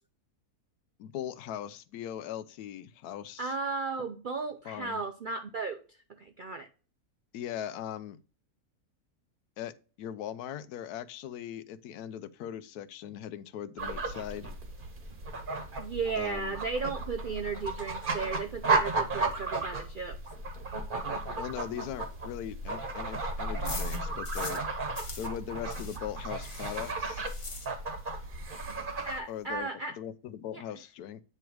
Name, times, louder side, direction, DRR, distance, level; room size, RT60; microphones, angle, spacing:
voice 1, 1.0-3.6 4.6-5.0 7.3-8.2 9.6-9.7 10.0-14.5 16.2-16.6 21.4-24.6 25.2-27.3 29.3-31.2, left 10 dB, 85° left, 1.1 m, -40 dB
voice 2, 3.4-5.8 6.2-6.7 15.8-20.2 29.0-29.9 30.5-30.6, right 4 dB, 70° right, 0.4 m, -35 dB
sound 1, 13.8-29.2, right 3 dB, 40° right, 1.1 m, -34 dB
sound 2, 21.8-24.7 24.9-28.2 28.4-28.5 28.8-28.9 29.1-29.6, left 3 dB, 30° left, 0.6 m, -44 dB
8.7 x 3.3 x 4.6 m
omnidirectional pair, 1.6 m